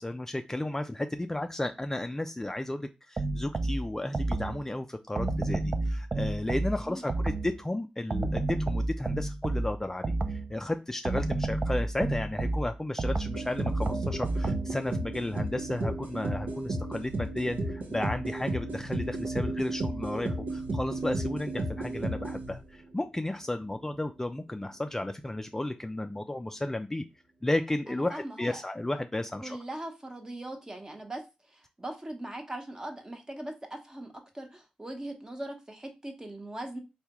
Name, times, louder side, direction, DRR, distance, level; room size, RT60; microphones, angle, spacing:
voice 1, 0.0-27.0 27.4-29.6, left 1 dB, 15° left, 0.4 m, -33 dB
sound 1, 3.2-4.7 5.2-7.6 8.1-10.6 11.0-14.8, right 2 dB, 45° right, 0.4 m, -31 dB
sound 2, 13.3-22.8, right 2 dB, 75° right, 0.8 m, -33 dB
voice 2, 27.9-28.6 29.4-31.2 31.8-36.8, right 1 dB, 25° right, 1.0 m, -40 dB
3.3 x 2.3 x 2.9 m
cardioid pair, 50°, 3 cm